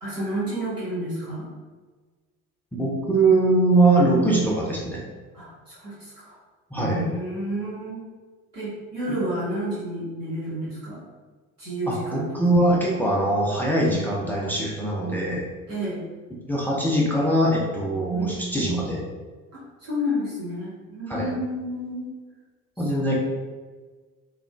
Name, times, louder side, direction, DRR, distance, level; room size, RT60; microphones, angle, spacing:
voice 1, 0.0-1.5 5.3-6.4 6.7-8.1 8.5-11.0 11.6-12.4 15.7-16.0 18.1-18.4 19.5-22.1 23.1-23.2, equal, 90° right, -9 dB, 1.0 m, -30 dB
voice 2, 2.7-5.0 6.7-7.0 9.1-9.2 11.9-15.5 16.5-19.0 21.1-21.3 22.8-23.2, right 2 dB, 5° left, -4 dB, 0.4 m, -22 dB
3.4 x 2.4 x 2.3 m, 1.4 s
figure-of-eight pair, 55°, 46 cm